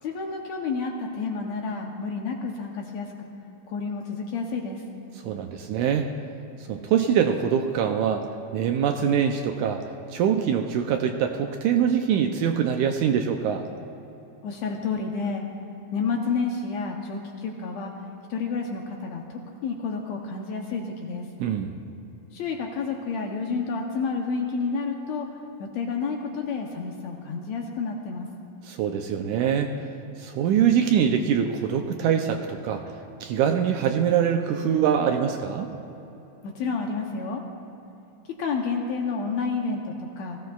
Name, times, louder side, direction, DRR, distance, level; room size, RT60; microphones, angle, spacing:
voice 1, 0.0-3.3 3.7-4.8 14.4-15.4 15.9-17.9 18.3-21.3 22.3-28.3 36.4-37.4 38.3-40.4, left 4 dB, 70° left, 1 dB, 1.8 m, -30 dB
voice 2, 5.2-6.1 6.7-8.3 8.5-9.8 10.1-13.7 21.4-21.7 28.7-29.7 30.2-32.8 33.2-35.7, right 8 dB, 80° right, 5 dB, 1.8 m, -23 dB
18.5 x 15.0 x 2.3 m, 3.0 s
omnidirectional pair, 3.9 m